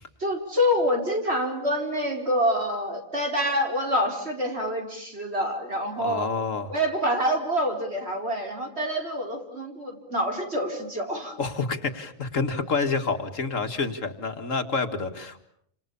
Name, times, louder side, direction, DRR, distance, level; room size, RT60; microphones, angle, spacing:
voice 1, 0.2-6.3 6.7-11.3, equal, 50° right, 2 dB, 4.8 m, -26 dB
voice 2, 6.0-6.7 11.4-15.4, left 4 dB, 70° left, 7 dB, 2.3 m, -28 dB
29.5 x 26.5 x 7.0 m, 0.67 s
omnidirectional pair, 1.4 m